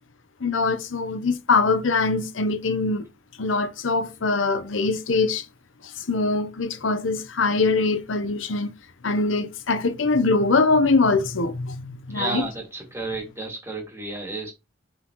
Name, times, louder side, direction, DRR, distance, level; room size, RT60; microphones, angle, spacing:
voice 1, 0.4-3.1 3.4-5.5 5.8-8.7 9.0-12.5, left 3 dB, 75° left, 0.8 m, -23 dB
voice 2, 12.1-14.5, right 3 dB, 15° right, 2.3 m, -32 dB
7.6 x 4.3 x 3.0 m
head